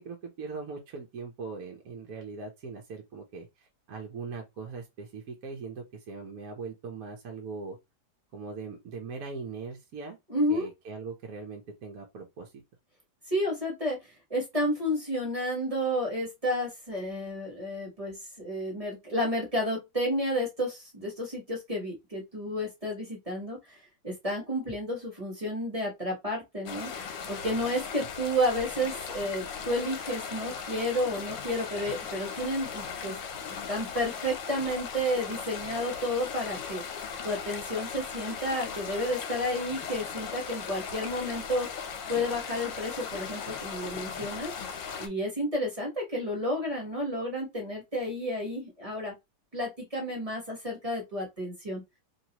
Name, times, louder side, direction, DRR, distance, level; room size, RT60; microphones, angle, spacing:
voice 1, 0.0-7.8 8.3-10.2 10.5-12.5 28.0-28.1, right 4 dB, 60° right, 1.0 m, -40 dB
voice 2, 10.3-10.7 13.3-14.0 14.3-23.8 24.0-33.1 33.5-36.8 37.2-44.5 45.0-49.1 49.5-51.8, equal, 20° right, 1.2 m, -31 dB
sound 1, 26.7-45.1, left 6 dB, 85° left, 1.4 m, -38 dB
2.9 x 2.9 x 2.9 m
omnidirectional pair, 2.0 m